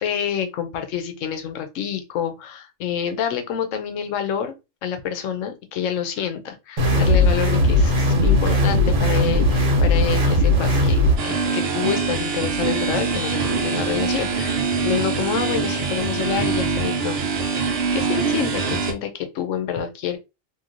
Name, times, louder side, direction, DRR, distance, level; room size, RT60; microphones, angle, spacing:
voice 1, 0.0-4.5 4.8-17.6 17.9-20.2, left 8 dB, 80° left, 0.9 m, -28 dB
sound 1, 6.8-11.2, left 1 dB, 85° right, 1.3 m, -18 dB
sound 2, 11.2-18.9, right 4 dB, 60° right, 0.8 m, -24 dB
3.1 x 2.6 x 2.5 m
omnidirectional pair, 1.3 m